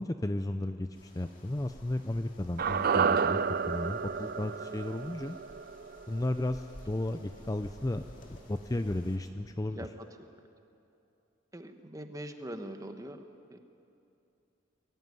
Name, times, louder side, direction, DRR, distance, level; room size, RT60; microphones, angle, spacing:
voice 1, 0.0-3.4 3.7-5.4 6.1-9.9, left 1 dB, 15° left, 8 dB, 0.5 m, -34 dB
sound 1, 0.9-9.2, left 1 dB, 40° left, 2.6 m, -54 dB
sound 2, 2.6-6.9 7.2-7.3, right 6 dB, 45° right, 0.4 m, -31 dB
voice 2, 11.5-13.2 13.5-13.6, right 1 dB, 15° right, 7 dB, 1.1 m, -42 dB
22.0 x 15.0 x 9.6 m, 2.7 s
head